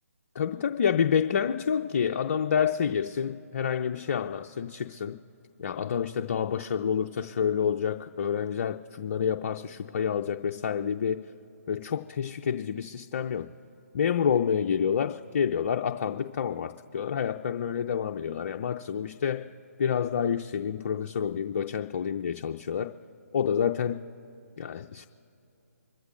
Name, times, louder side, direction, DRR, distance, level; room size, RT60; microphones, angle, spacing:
voice 1, 0.3-5.2 5.6-11.2 11.7-13.5 13.9-19.5 19.8-22.9 23.3-24.0 24.6-25.1, left 7 dB, 45° left, 5 dB, 0.6 m, -28 dB
26.0 x 14.0 x 2.5 m, 2.8 s
figure-of-eight pair, 150°, 8 cm